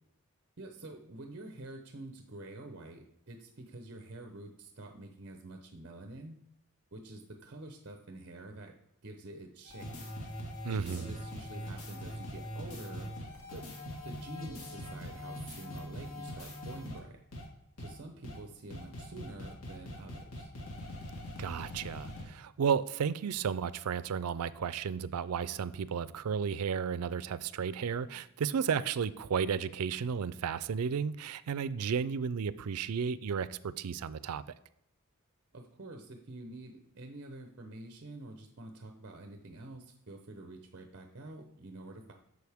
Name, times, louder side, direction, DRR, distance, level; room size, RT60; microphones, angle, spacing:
voice 1, 0.6-6.4 6.9-10.1 10.8-13.1 13.5-13.7 14.0-17.2 17.8-20.5 35.5-42.1, right 2 dB, 50° right, 0.8 m, -47 dB
sound 1, 9.7-17.0 17.3-17.4 17.8-17.9 18.2-18.4 18.7-22.2, equal, 80° left, 2.1 m, -42 dB
voice 2, 10.6-11.1 21.4-34.4, right 6 dB, 90° right, 0.4 m, -33 dB
9.4 x 6.4 x 3.5 m
head